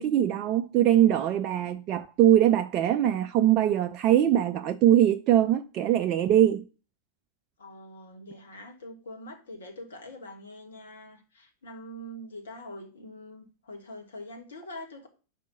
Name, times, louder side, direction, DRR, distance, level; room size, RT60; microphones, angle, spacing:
voice 1, 0.0-6.6, right 11 dB, 35° right, 0.4 m, -22 dB
voice 2, 7.6-15.1, left 1 dB, 65° left, 1.6 m, -44 dB
5.2 x 4.9 x 6.2 m
figure-of-eight pair, 90°, 0 cm